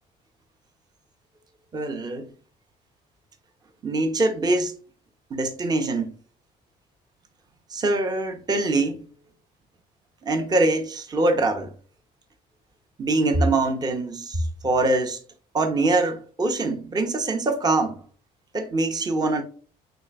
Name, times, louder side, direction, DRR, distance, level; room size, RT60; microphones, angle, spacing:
voice 1, 1.7-2.3 3.8-4.8 5.3-6.2 7.7-9.0 10.2-11.7 13.0-15.2 15.5-18.0 18.5-19.4, right 2 dB, 25° right, 0.6 m, -23 dB
3.8 x 3.3 x 2.2 m
cardioid pair, 110°, 17 cm